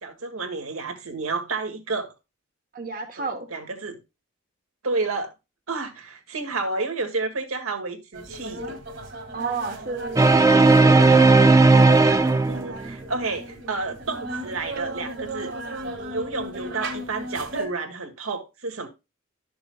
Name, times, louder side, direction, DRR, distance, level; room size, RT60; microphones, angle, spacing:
voice 1, 0.0-2.1 3.2-4.0 4.8-5.3 5.7-8.7 12.5-15.5 16.0-18.9, right 3 dB, 90° right, 2.0 m, -30 dB
voice 2, 2.7-3.5 9.3-10.5, right 4 dB, 40° right, 1.0 m, -31 dB
sound 1, 8.1-17.7, right 1 dB, 55° right, 2.1 m, -35 dB
sound 2, 10.2-12.9, right 3 dB, 15° right, 0.5 m, -15 dB
12.0 x 6.8 x 2.3 m
head